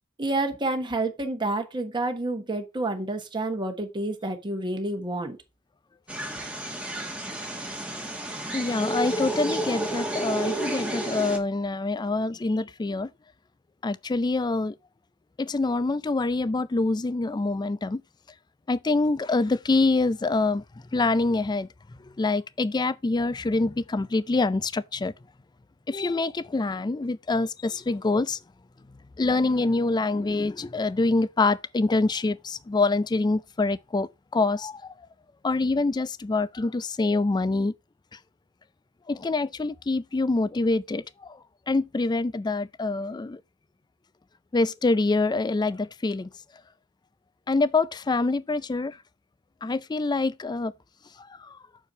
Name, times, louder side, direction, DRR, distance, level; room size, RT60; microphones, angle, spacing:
voice 1, 0.2-5.4, right 2 dB, 25° right, 1.3 m, -29 dB
sound 1, 6.1-11.4, right 1 dB, 5° right, 1.4 m, -31 dB
voice 2, 8.5-13.1 13.8-14.7 15.4-18.0 18.7-20.6 20.9-21.7 22.2-25.1 25.9-28.4 29.2-34.9 35.4-37.7 39.1-41.4 41.7-43.4 44.5-46.3 47.5-49.0 49.6-50.7 51.2-51.6, left 3 dB, 20° left, 0.4 m, -25 dB
6.8 x 4.5 x 5.4 m
head